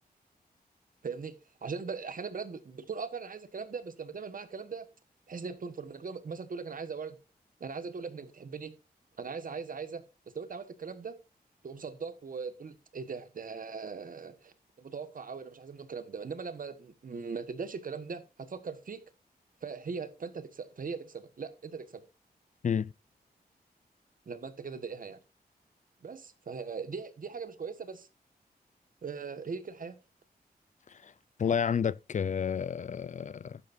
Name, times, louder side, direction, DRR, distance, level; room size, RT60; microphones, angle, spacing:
voice 1, 1.0-1.3 1.6-4.9 5.3-7.2 7.6-8.7 9.2-10.0 10.3-11.1 11.6-19.0 19.6-22.0 24.3-25.2 26.0-28.1 29.0-29.9, right 5 dB, 55° right, 1.3 m, -40 dB
voice 2, 31.4-33.6, left 7 dB, 50° left, 0.4 m, -30 dB
11.5 x 10.0 x 2.6 m
wide cardioid pair, 90°, 16 cm